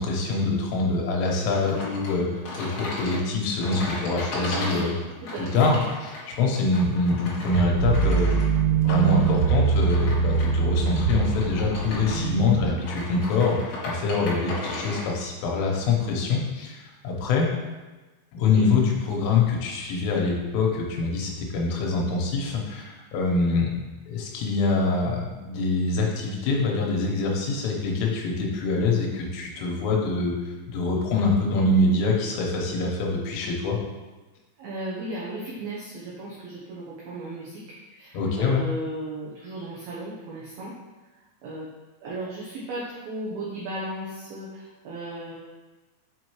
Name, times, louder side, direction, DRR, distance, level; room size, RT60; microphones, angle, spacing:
voice 1, 0.0-4.9 5.5-8.3 8.7-17.5 18.3-23.7 24.1-30.3 30.7-33.8 38.1-38.7, left 3 dB, 80° left, -1 dB, 3.5 m, -25 dB
sound 1, 1.5-15.1, left 2 dB, 50° left, 2.2 m, -36 dB
sound 2, 7.5-12.7, right 5 dB, 70° right, 3.7 m, -23 dB
voice 2, 34.6-40.7 41.4-41.7 42.0-45.3, right 1 dB, 90° right, -6 dB, 2.1 m, -35 dB
7.5 x 5.3 x 3.1 m, 1.2 s
omnidirectional pair, 5.8 m